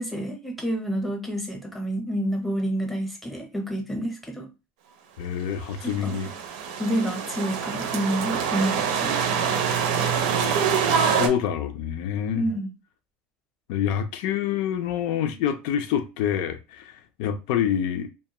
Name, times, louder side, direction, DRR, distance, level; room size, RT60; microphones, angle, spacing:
voice 1, 0.0-4.5 5.8-6.2 6.8-9.2 12.3-12.7, right 1 dB, ahead, 0.7 m, -28 dB
voice 2, 5.2-6.3 10.9-12.5 13.7-18.1, left 9 dB, 70° left, 0.5 m, -27 dB
sound 1, 5.8-11.3, right 7 dB, 80° right, 0.6 m, -25 dB
2.3 x 2.2 x 2.9 m
supercardioid pair, 140°, 5 cm